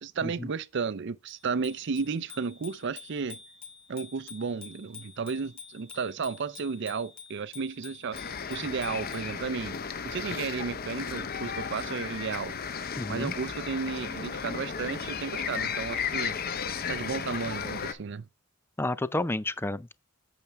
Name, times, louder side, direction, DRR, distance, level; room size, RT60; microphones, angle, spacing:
voice 1, 0.0-3.4 3.9-8.2 8.5-9.8 10.0-12.6 13.1-16.4 16.9-18.3, right 5 dB, 60° right, 0.5 m, -33 dB
Bicycle bell, 1.3-9.4, left 6 dB, 30° left, 2.6 m, -49 dB
sound 1, 8.1-17.9, left 6 dB, 50° left, 0.7 m, -34 dB
voice 2, 13.0-13.3 18.8-19.9, left 2 dB, 10° left, 0.4 m, -31 dB
8.6 x 5.9 x 3.4 m
head